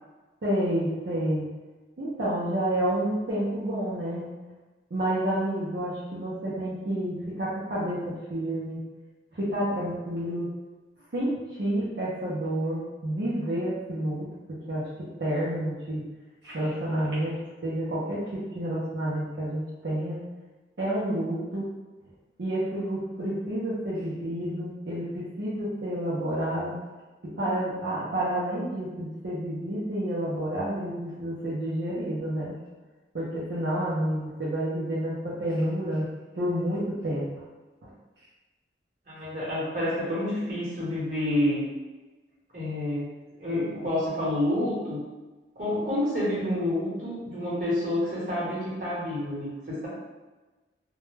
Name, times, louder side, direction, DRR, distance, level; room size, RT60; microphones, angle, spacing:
voice 1, 0.4-1.5 2.0-4.3 4.9-8.8 9.3-10.5 11.1-14.3 14.7-14.8 15.2-16.0 16.4-18.2 18.5-20.2 20.8-21.7 22.4-26.8 27.3-32.5 33.1-36.1 36.4-37.2 37.8-37.9, right 1 dB, 65° right, -9 dB, 0.6 m, -29 dB
voice 2, 39.1-41.6 42.5-43.1 43.4-45.0 45.5-49.9, left 1 dB, 45° right, -9 dB, 1.1 m, -28 dB
2.2 x 2.1 x 3.1 m, 1.2 s
head